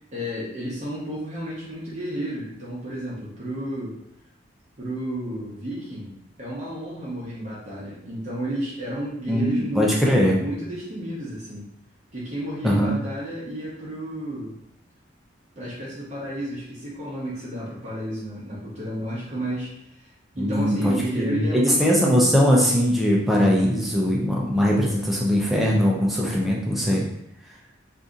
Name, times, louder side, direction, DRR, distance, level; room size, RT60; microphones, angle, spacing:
voice 1, 0.1-4.0 4.8-11.7 12.1-14.5 15.6-20.1 20.3-22.2, right 1 dB, 35° right, -7 dB, 0.8 m, -32 dB
voice 2, 9.3-10.4 12.6-13.0 20.4-27.0, equal, ahead, -4 dB, 0.5 m, -21 dB
2.7 x 2.6 x 3.6 m, 0.79 s
head